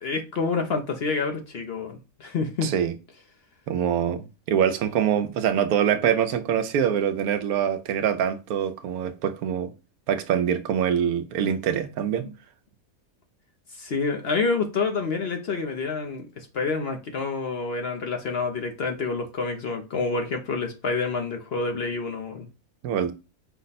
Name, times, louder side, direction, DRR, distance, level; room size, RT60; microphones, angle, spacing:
voice 1, 0.0-2.7 13.7-22.5, left 4 dB, 55° left, 0.8 m, -28 dB
voice 2, 2.6-2.9 3.7-9.7 10.1-12.3 22.8-23.1, right 8 dB, 80° right, 1.1 m, -24 dB
5.7 x 2.1 x 3.9 m
omnidirectional pair, 1.5 m